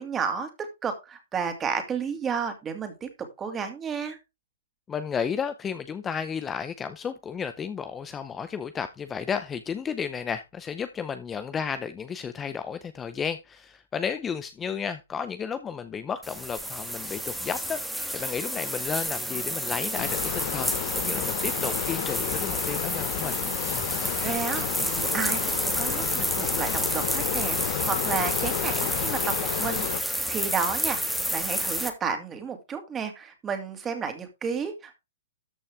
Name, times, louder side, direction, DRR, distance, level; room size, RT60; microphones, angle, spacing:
voice 1, 0.0-4.2 24.2-31.0 31.3-35.0, right 6 dB, 20° right, 2.4 m, -32 dB
voice 2, 4.9-23.4, left 7 dB, 15° left, 0.6 m, -33 dB
sound 1, 16.2-31.9, equal, ahead, 1.4 m, -30 dB
sound 2, 20.0-30.0, left 14 dB, 55° left, 0.7 m, -32 dB
13.5 x 5.6 x 3.5 m
hypercardioid pair, 135°, 0 cm